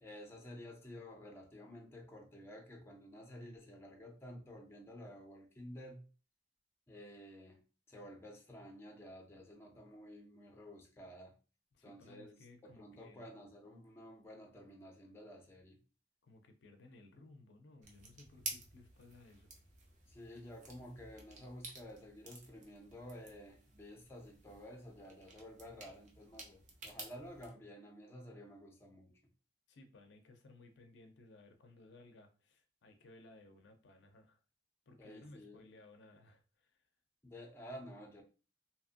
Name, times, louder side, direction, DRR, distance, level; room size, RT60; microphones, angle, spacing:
voice 1, 0.0-6.0 6.9-11.4 11.8-12.4 12.6-15.8 20.1-29.2 35.0-35.6 37.2-38.2, equal, 15° left, 0.5 m, -52 dB
voice 2, 11.7-13.2 16.2-19.5 29.7-34.4 34.9-36.8, left 2 dB, 65° left, 0.4 m, -60 dB
sound 1, 17.8-27.5, right 3 dB, 40° right, 0.6 m, -52 dB
2.8 x 2.5 x 2.4 m
head